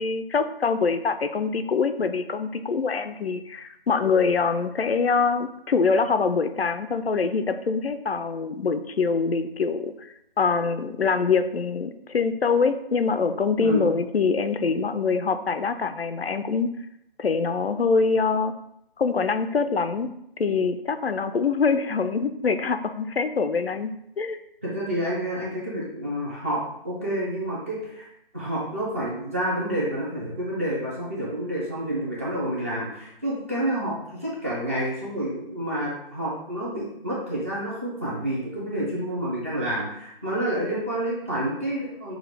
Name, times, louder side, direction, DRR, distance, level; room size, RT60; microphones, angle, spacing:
voice 1, 0.0-9.9 10.4-16.7 17.2-18.5 19.0-20.1 20.4-24.4, left 5 dB, 85° left, 9 dB, 0.6 m, -24 dB
voice 2, 24.6-26.6 26.8-28.1 28.3-42.2, right 1 dB, 15° right, -7 dB, 0.6 m, -29 dB
6.1 x 2.4 x 3.4 m, 0.77 s
figure-of-eight pair, 160°, 30 cm